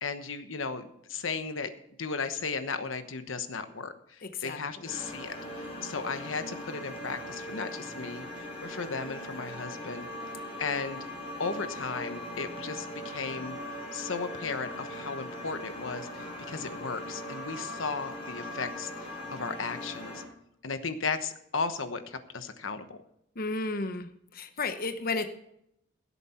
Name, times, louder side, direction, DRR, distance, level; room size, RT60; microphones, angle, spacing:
voice 1, 0.0-1.7 2.0-10.1 10.6-11.0 11.4-13.6 13.9-20.2 20.6-23.0, left 4 dB, 85° left, 9 dB, 1.1 m, -35 dB
voice 2, 4.2-4.9 23.3-25.3, left 3 dB, 50° left, 8 dB, 0.9 m, -33 dB
sound 1, 4.8-20.2, left 1 dB, 30° left, 4.5 m, -40 dB
17.0 x 8.3 x 4.4 m, 0.76 s
head